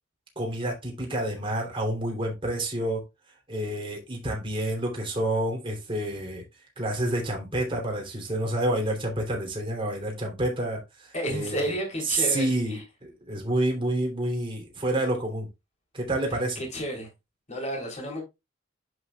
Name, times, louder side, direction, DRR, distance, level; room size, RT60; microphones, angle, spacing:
voice 1, 0.3-3.0 3.5-6.4 6.8-11.7 12.0-15.5 15.9-16.6, right 1 dB, 30° right, 3.2 m, -28 dB
voice 2, 11.1-12.8 16.6-17.1 17.5-18.2, equal, 35° left, 3.5 m, -31 dB
11.0 x 5.4 x 2.3 m
head